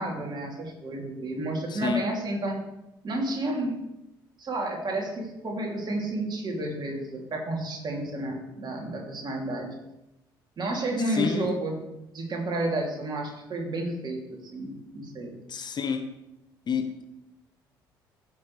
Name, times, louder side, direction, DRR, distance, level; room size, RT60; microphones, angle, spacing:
voice 1, 0.0-2.6 3.0-3.7 4.4-9.7 10.6-11.7 12.1-15.3, right 2 dB, 40° right, 0 dB, 2.8 m, -31 dB
voice 2, 1.7-2.0 11.0-11.5 15.5-16.0 16.7-17.0, left 7 dB, 40° left, 8 dB, 0.9 m, -29 dB
15.0 x 6.3 x 3.3 m, 0.89 s
figure-of-eight pair, 50°, 11 cm